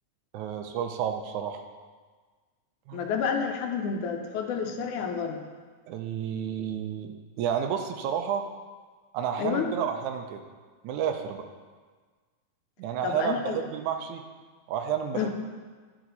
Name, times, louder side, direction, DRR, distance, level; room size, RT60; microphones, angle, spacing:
voice 1, 0.3-1.6 2.9-3.1 5.9-8.4 9.1-10.4 10.8-11.5 12.8-14.2 14.7-15.3, right 8 dB, 80° right, 5 dB, 1.9 m, -31 dB
voice 2, 2.9-5.4 9.4-9.7 13.0-13.6 15.1-15.3, left 6 dB, 80° left, 3 dB, 2.2 m, -29 dB
11.5 x 6.9 x 4.1 m, 1.5 s
omnidirectional pair, 3.6 m